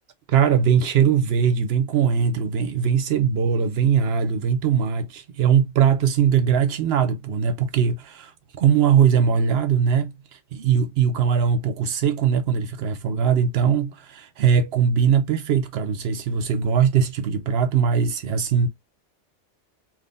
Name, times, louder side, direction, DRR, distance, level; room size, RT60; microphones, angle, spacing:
voice 1, 0.3-8.3 8.6-18.7, right 7 dB, 65° right, 0.7 m, -21 dB
3.6 x 2.4 x 2.5 m
omnidirectional pair, 1.3 m